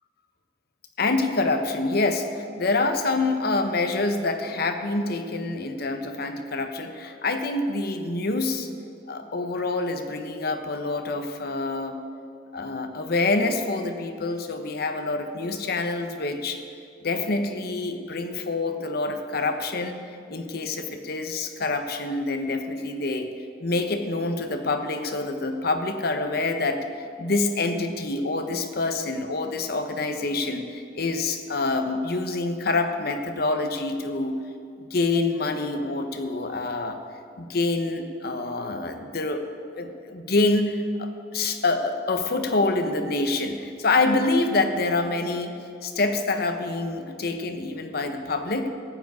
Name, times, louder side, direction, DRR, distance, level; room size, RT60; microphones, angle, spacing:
voice 1, 1.0-8.7 9.1-12.0 12.5-16.6 17.0-20.0 20.3-23.3 23.6-26.8 27.2-34.4 34.8-37.0 37.4-39.5 39.8-45.5 45.8-48.7, left 3 dB, 60° left, 7 dB, 0.9 m, -26 dB
14.0 x 5.0 x 9.3 m, 2.4 s
head